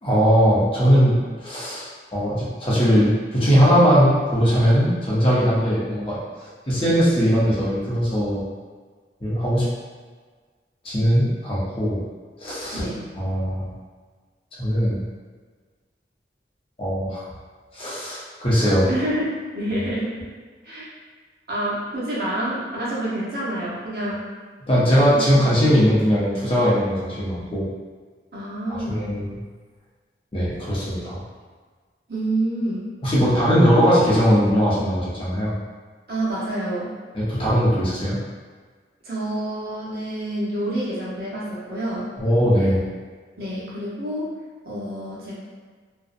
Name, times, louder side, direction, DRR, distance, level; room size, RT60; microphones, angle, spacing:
voice 1, 0.0-6.2 6.7-8.4 9.2-9.6 10.8-12.0 12.4-12.8 13.2-13.7 14.6-15.0 16.8-17.2 17.7-18.9 24.7-27.6 28.9-29.4 30.3-31.2 33.0-35.5 37.1-38.2 42.2-42.8, equal, 30° left, -8 dB, 0.6 m, -19 dB
voice 2, 12.7-13.0 18.9-20.2 20.6-20.8 21.5-24.2 25.1-25.2 28.3-29.0 32.1-32.9 36.1-37.0 39.0-42.1 43.4-44.3 44.6-45.3, right 1 dB, 60° right, -7 dB, 0.7 m, -27 dB
2.5 x 2.0 x 2.4 m, 1.5 s
head